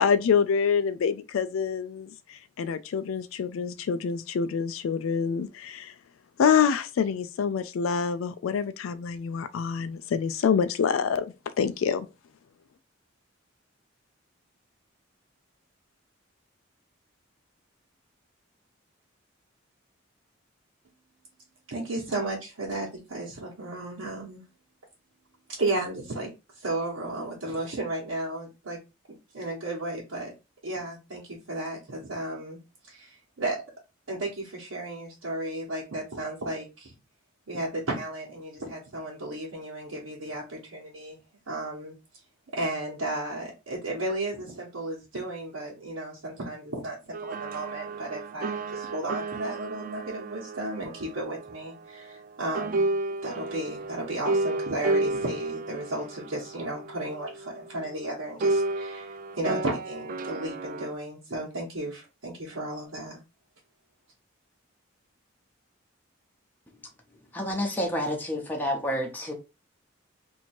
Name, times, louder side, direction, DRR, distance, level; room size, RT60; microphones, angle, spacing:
voice 1, 0.0-5.9 6.4-11.3 11.6-12.1, left 6 dB, 80° left, 0.4 m, -26 dB
voice 2, 21.7-24.4 25.5-28.8 29.1-30.3 30.6-32.6 32.8-33.6 34.1-36.9 37.5-41.2 41.5-41.9 42.5-52.9 53.2-63.2, right 2 dB, 85° right, 1.2 m, -34 dB
sound 1, 47.1-52.3 52.5-58.0 58.4-60.9, right 2 dB, 45° right, 0.3 m, -32 dB
voice 3, 67.3-69.3, left 1 dB, 10° left, 0.7 m, -29 dB
2.9 x 2.7 x 4.3 m
head